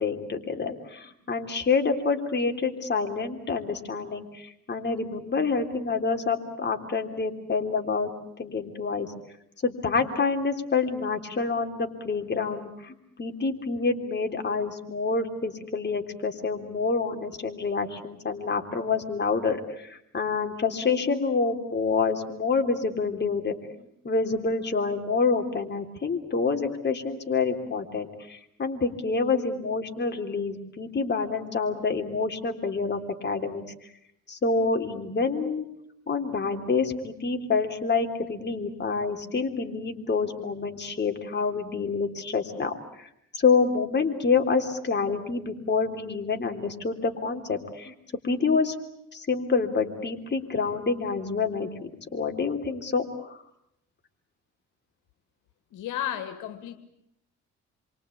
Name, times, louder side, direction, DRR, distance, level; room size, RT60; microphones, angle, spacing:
voice 1, 0.0-8.1 8.4-9.1 9.6-33.6 34.3-35.7 36.1-47.9 48.2-48.7 49.1-53.4, left 4 dB, 35° left, 4 dB, 3.5 m, -27 dB
voice 2, 55.7-56.8, left 11 dB, 85° left, 10 dB, 2.2 m, -33 dB
28.0 x 24.0 x 8.5 m, 0.76 s
cardioid pair, 90°, 30 cm